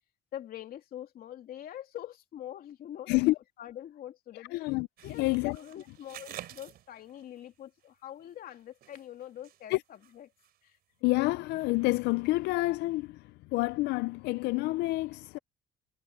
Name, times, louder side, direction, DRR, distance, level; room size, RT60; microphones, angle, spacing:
voice 1, 0.3-3.1 3.6-4.5 5.0-10.3 10.6-10.8, left 11 dB, 60° left, 2.7 m, -44 dB
voice 2, 4.5-4.9 5.2-5.6 9.7-9.8 11.0-15.4, left 20 dB, 85° left, 0.4 m, -28 dB
sound 1, 5.0-7.4 8.2-9.6 10.0-10.1 10.4-10.5, right 12 dB, 70° right, 3.8 m, -48 dB
cardioid pair, 110°, 17 cm